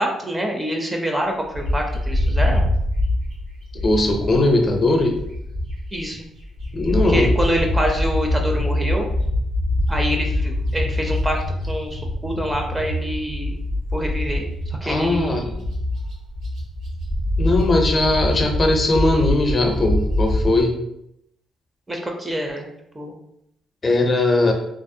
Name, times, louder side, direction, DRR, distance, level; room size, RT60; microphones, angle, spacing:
voice 1, 0.0-2.6 5.9-6.3 7.1-9.0 9.9-11.4 11.7-13.6 13.9-15.6 21.9-22.7 22.9-23.1, equal, 15° right, 2 dB, 0.4 m, -26 dB
Bird, 1.5-6.0 6.4-20.6, left 1 dB, 75° right, 0.8 m, -24 dB
voice 2, 3.8-5.1 6.7-7.3 14.8-15.4 17.4-20.8 23.8-24.5, left 2 dB, 35° left, 2 dB, 0.5 m, -19 dB
2.4 x 2.0 x 2.6 m, 0.78 s
cardioid pair, 90°, 0 cm